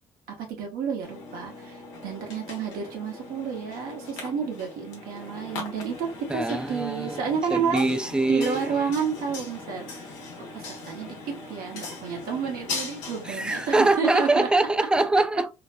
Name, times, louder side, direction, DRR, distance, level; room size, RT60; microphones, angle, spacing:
voice 1, 0.4-8.0 8.3-10.1 10.4-14.5, right 6 dB, 70° right, 1.0 m, -30 dB
sound 1, 1.0-13.7, left 3 dB, 90° left, 0.8 m, -39 dB
voice 2, 6.3-8.9 13.3-15.5, right 2 dB, 5° right, 0.3 m, -24 dB
2.6 x 2.1 x 2.5 m
hypercardioid pair, 60°, 16 cm